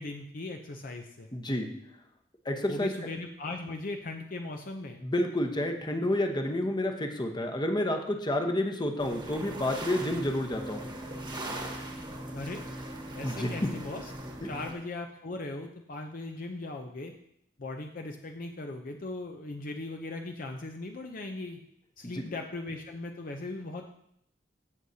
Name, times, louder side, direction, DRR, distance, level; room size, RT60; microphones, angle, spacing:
voice 1, 0.0-1.3 2.7-5.0 12.3-12.6 13.1-14.1 14.4-17.1 17.6-21.6 22.0-23.9, left 2 dB, 50° left, 4 dB, 0.6 m, -38 dB
voice 2, 1.3-1.7 2.4-2.9 5.0-10.9 13.2-13.5 14.4-14.5 22.0-22.2, left 1 dB, 25° left, 4 dB, 0.9 m, -29 dB
sound 1, 9.0-14.7, right 1 dB, 25° right, 1.2 m, -40 dB
16.0 x 6.4 x 2.8 m, 0.73 s
head